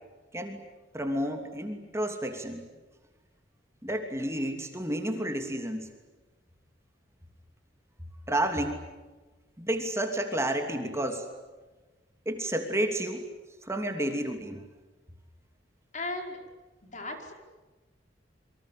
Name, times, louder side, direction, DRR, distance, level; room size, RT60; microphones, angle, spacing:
voice 1, 0.9-2.7 3.8-5.9 8.3-8.8 9.6-11.3 12.2-13.2 13.6-14.6, right 1 dB, 15° right, 5 dB, 2.9 m, -30 dB
voice 2, 15.9-16.4 16.8-17.3, left 2 dB, 45° left, 3 dB, 5.0 m, -36 dB
28.5 x 24.5 x 8.5 m, 1.2 s
head